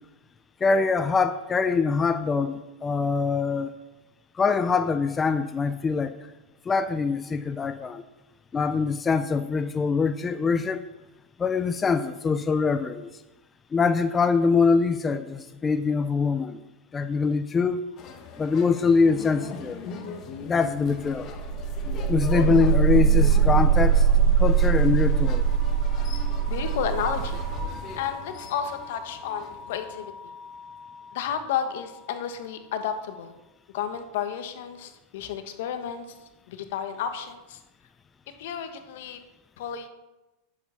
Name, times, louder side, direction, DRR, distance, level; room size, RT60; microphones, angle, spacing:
voice 1, 0.6-3.7 4.3-6.2 6.7-8.0 8.5-10.9 11.4-13.1 13.7-16.6 16.9-17.9 18.4-19.8 20.4-21.3 22.1-24.1 24.4-25.5, left 5 dB, 20° left, 0.5 m, -24 dB
sound 1, 18.0-30.1, left 5 dB, 35° left, 1.3 m, -40 dB
sound 2, 21.1-31.0, right 7 dB, 40° right, 3.1 m, -23 dB
voice 2, 26.5-27.4 28.0-30.1 31.1-33.3 33.7-36.2 36.5-37.6 38.4-39.2 39.6-39.9, left 8 dB, 70° left, 1.3 m, -32 dB
11.0 x 7.3 x 5.7 m
supercardioid pair, 135°, 0 cm